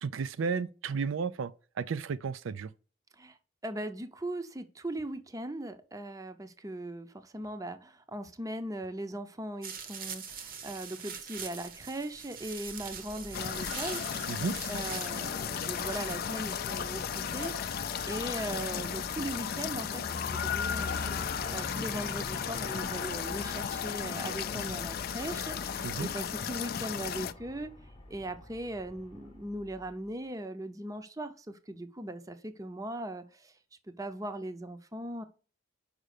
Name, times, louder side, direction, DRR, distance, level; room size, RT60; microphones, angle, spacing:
voice 1, 0.0-1.5 1.8-2.7 14.3-14.6 25.8-26.1, right 5 dB, 85° right, 0.4 m, -33 dB
voice 2, 3.6-14.4 14.7-27.7 28.1-33.5 34.0-35.2, right 1 dB, 15° right, 0.6 m, -39 dB
sound 1, 9.6-18.0, right 6 dB, 45° right, 0.9 m, -44 dB
Aircraft, 12.9-30.1, left 2 dB, 30° left, 0.8 m, -44 dB
sound 2, 13.3-27.3, left 8 dB, 50° left, 0.4 m, -35 dB
5.5 x 5.1 x 6.6 m
head